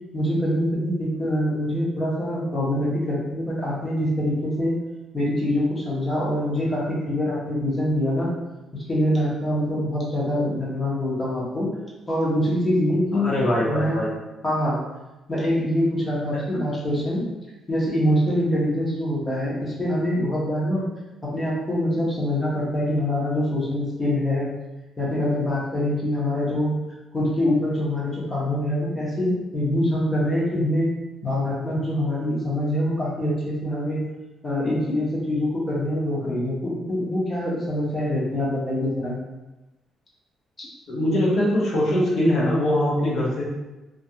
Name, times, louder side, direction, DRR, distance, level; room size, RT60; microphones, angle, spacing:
voice 1, 0.1-4.8 5.1-8.3 8.9-11.7 12.1-13.3 13.6-14.0 14.4-14.8 15.3-17.2 17.7-20.8 21.3-24.5 25.0-26.8 27.1-30.9 31.2-34.0 34.4-39.2, left 1 dB, 20° left, -6 dB, 0.6 m, -24 dB
voice 2, 13.1-14.1 16.3-16.4 40.9-43.4, left 1 dB, 55° left, -4 dB, 0.7 m, -22 dB
2.4 x 2.2 x 2.7 m, 1.1 s
cardioid pair, 165°, 0 cm